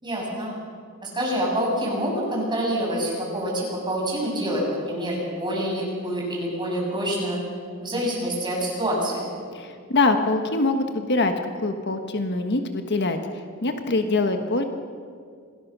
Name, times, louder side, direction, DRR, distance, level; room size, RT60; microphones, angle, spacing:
voice 1, 0.0-0.5 1.1-7.4 7.8-9.3, equal, 20° right, -3 dB, 7.5 m, -26 dB
voice 2, 9.5-11.3 11.6-14.6, left 3 dB, 50° left, 6 dB, 1.4 m, -24 dB
26.5 x 19.0 x 6.3 m, 2.1 s
head